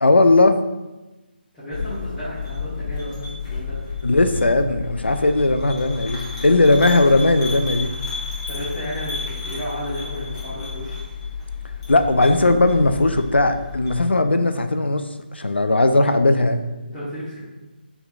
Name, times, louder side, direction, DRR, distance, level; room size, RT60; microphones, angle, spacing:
voice 1, 0.0-0.6 4.0-7.9 11.9-16.7, left 2 dB, 85° left, 8 dB, 0.3 m, -18 dB
voice 2, 1.5-3.8 8.5-11.0 16.9-17.5, equal, 5° left, -16 dB, 0.9 m, -32 dB
sound 1, 1.7-14.0, left 5 dB, 30° left, 1.0 m, -31 dB
4.2 x 3.4 x 2.3 m, 1.1 s
figure-of-eight pair, 155°, 6 cm